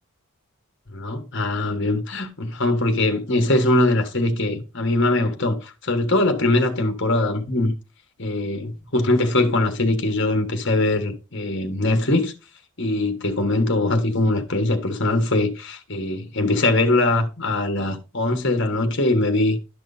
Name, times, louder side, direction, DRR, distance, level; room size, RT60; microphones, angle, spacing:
voice 1, 0.9-7.7 8.2-12.3 12.8-19.6, left 2 dB, 55° left, 1.5 m, -22 dB
12.0 x 6.1 x 2.7 m
head